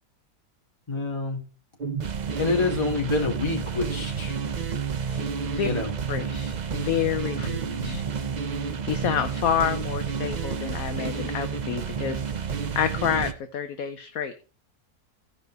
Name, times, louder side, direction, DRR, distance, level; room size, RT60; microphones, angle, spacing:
voice 1, 0.9-1.4 2.4-4.4 5.1-5.2 5.6-5.9 7.4-8.0, left 3 dB, 15° left, -2 dB, 2.2 m, -27 dB
sound 1, 1.8-13.3, right 6 dB, 85° right, 0.3 m, -30 dB
voice 2, 6.1-7.5 7.8-8.0 8.8-12.2 12.7-14.3, left 9 dB, 65° left, 9 dB, 1.1 m, -28 dB
15.0 x 5.4 x 4.5 m, 0.36 s
omnidirectional pair, 1.8 m